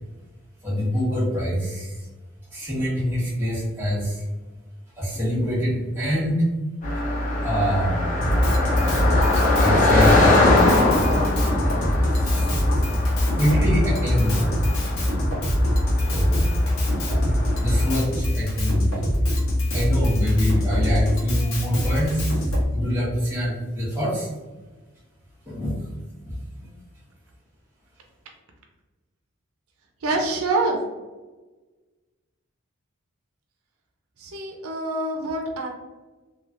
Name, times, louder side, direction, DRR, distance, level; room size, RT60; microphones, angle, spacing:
voice 1, 0.6-2.1 2.5-4.2 5.0-6.5 7.4-8.0 9.3-10.4 10.8-11.0 11.7-12.9 13.4-14.6 16.1-16.5 17.6-19.0 19.7-22.4 22.7-24.3 25.5-25.9 26.3-26.7, equal, 10° right, -9 dB, 1.0 m, -25 dB
Car passing by, 6.8-18.0, left 2 dB, 35° left, 0.6 m, -23 dB
Drum kit, 8.2-22.6, left 1 dB, 75° left, 0.8 m, -23 dB
voice 2, 30.0-30.8 34.2-35.7, right 2 dB, 85° right, 2 dB, 0.5 m, -25 dB
3.1 x 2.2 x 2.4 m, 1.2 s
head